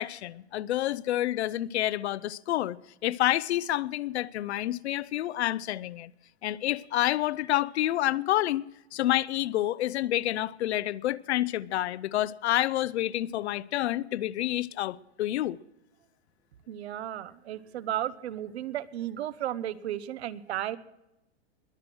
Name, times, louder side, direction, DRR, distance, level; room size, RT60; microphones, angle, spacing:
voice 1, 0.0-2.8 3.0-6.1 6.4-15.6, left 14 dB, 90° left, 0.6 m, -28 dB
voice 2, 16.7-20.8, right 12 dB, 80° right, 1.0 m, -34 dB
21.5 x 7.9 x 6.2 m
supercardioid pair, 175°, 32 cm